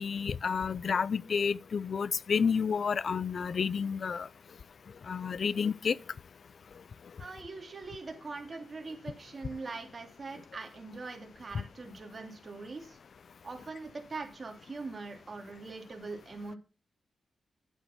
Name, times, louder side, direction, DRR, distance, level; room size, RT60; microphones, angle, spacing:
voice 1, 0.0-4.3 5.1-6.0 11.5-11.6, left 6 dB, 60° left, 0.5 m, -30 dB
voice 2, 7.2-13.0 13.4-16.6, right 3 dB, 40° right, 3.0 m, -42 dB
10.0 x 8.2 x 5.9 m
cardioid pair, 95°, 0 cm